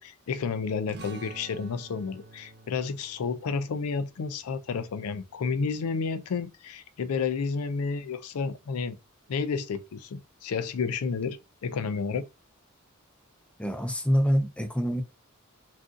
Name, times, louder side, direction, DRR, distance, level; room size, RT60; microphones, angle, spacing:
voice 1, 0.0-9.0 9.3-12.3, left 5 dB, 85° left, 0.4 m, -31 dB
sound 1, 0.9-6.1, right 3 dB, 50° right, 0.7 m, -50 dB
voice 2, 13.6-15.0, equal, 5° left, 0.4 m, -25 dB
2.6 x 2.3 x 3.6 m
head